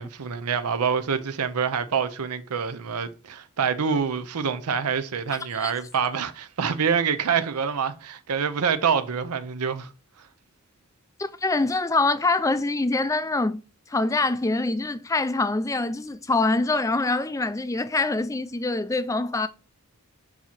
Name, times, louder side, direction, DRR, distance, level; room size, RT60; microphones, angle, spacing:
voice 1, 0.0-9.9, right 6 dB, 85° right, 0.6 m, -26 dB
voice 2, 11.2-13.6 13.9-19.5, left 3 dB, 15° left, 0.3 m, -24 dB
7.1 x 2.9 x 5.8 m
head